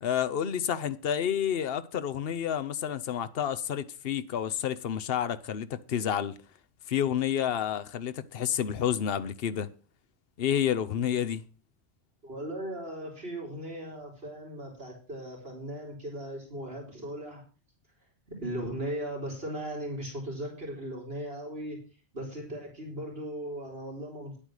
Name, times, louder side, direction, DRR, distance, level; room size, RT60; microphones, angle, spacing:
voice 1, 0.0-6.3 6.9-9.7 10.4-11.4, left 9 dB, 65° left, 1.0 m, -29 dB
voice 2, 12.2-17.4 18.4-21.8 22.1-24.4, right 1 dB, 65° right, 3.9 m, -37 dB
10.0 x 8.9 x 6.4 m
omnidirectional pair, 1.1 m